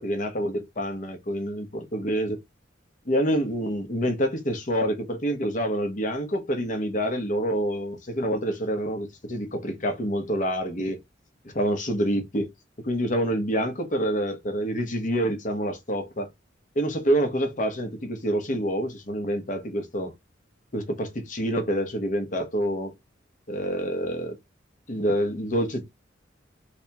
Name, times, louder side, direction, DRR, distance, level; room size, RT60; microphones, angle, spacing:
voice 1, 0.0-2.4 3.0-11.0 11.5-12.5 12.8-16.3 16.7-20.1 20.7-22.9 23.5-24.4 24.9-25.9, equal, 40° left, 1.0 m, -27 dB
3.5 x 3.4 x 2.9 m
head